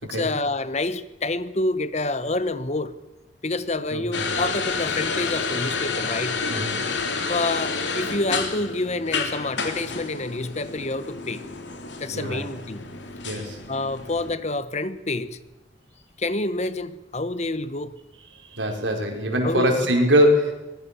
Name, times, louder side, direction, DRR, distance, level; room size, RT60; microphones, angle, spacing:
voice 1, 0.0-2.9 3.4-6.4 7.3-11.4 12.0-12.9 13.7-15.4 16.2-18.0 19.4-19.9, left 2 dB, 40° left, 1.2 m, -28 dB
voice 2, 3.9-4.3 6.5-6.9 12.1-12.5 13.2-13.6 18.5-20.5, equal, 90° right, 5.3 m, -22 dB
sound 1, 4.1-14.3, left 4 dB, 80° left, 3.4 m, -30 dB
23.5 x 20.0 x 7.1 m
head